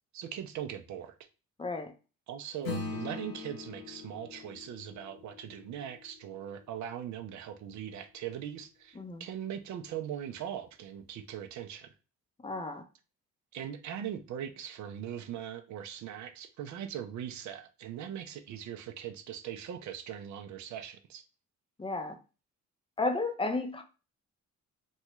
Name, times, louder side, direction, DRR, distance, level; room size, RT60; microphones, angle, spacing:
voice 1, 0.1-1.2 2.3-11.9 13.5-21.2, right 9 dB, 70° right, 0.5 m, -40 dB
voice 2, 1.6-1.9 9.0-9.3 12.4-12.8 21.8-22.2 23.0-23.8, left 3 dB, 20° left, 0.5 m, -33 dB
Acoustic guitar / Strum, 2.6-7.4, left 3 dB, 80° left, 1.0 m, -42 dB
3.1 x 2.3 x 3.0 m
cardioid pair, 90°, 30 cm